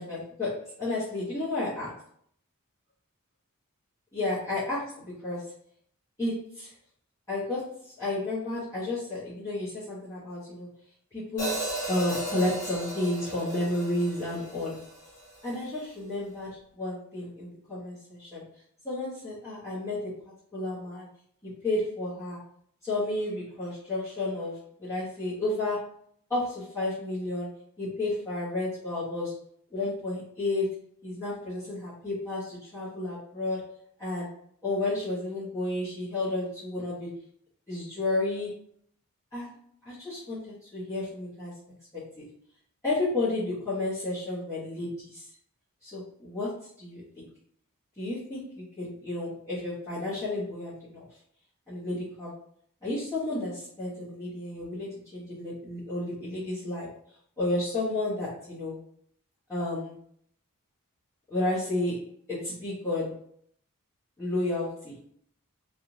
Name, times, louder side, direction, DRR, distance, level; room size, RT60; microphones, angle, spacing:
voice 1, 0.0-1.9 4.1-5.5 6.2-6.7 7.3-10.7 11.1-14.9 15.4-18.5 18.8-21.1 21.4-22.4 22.8-25.9 26.3-29.4 29.7-30.7 31.0-33.7 34.0-34.3 34.6-37.2 37.7-38.6 39.3-39.5 39.8-41.5 41.9-42.2 42.8-45.3 45.8-47.2 48.0-51.1 51.7-52.4 52.8-56.9 57.4-58.8 59.5-60.0 61.3-63.2 64.2-64.9, left 2 dB, 15° left, -13 dB, 1.2 m, -32 dB
Hi-hat, 11.4-15.6, right 1 dB, 70° left, 1.5 m, -36 dB
3.4 x 2.5 x 2.9 m, 0.66 s
head